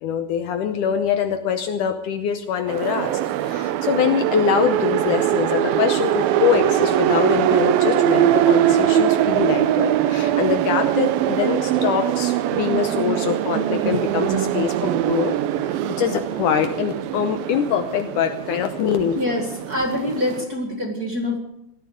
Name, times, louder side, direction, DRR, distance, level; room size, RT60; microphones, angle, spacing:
voice 1, 0.0-15.4 15.6-19.2, left 8 dB, 75° left, 7 dB, 2.1 m, -24 dB
sound 1, 2.7-20.5, right 11 dB, 80° right, 2.6 m, -22 dB
voice 2, 19.1-21.4, left 1 dB, 30° right, 1 dB, 2.0 m, -25 dB
17.0 x 13.0 x 6.4 m, 0.81 s
omnidirectional pair, 4.2 m